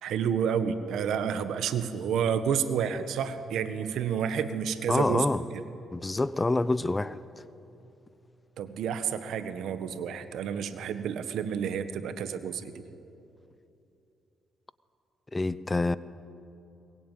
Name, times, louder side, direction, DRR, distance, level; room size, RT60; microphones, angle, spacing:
voice 1, 0.0-5.6 8.6-12.8, right 7 dB, 75° right, 1.5 m, -30 dB
voice 2, 4.9-5.4 5.9-7.2 15.3-16.0, left 2 dB, 20° left, 0.7 m, -26 dB
22.0 x 21.0 x 9.3 m
cardioid pair, 90°, 0 cm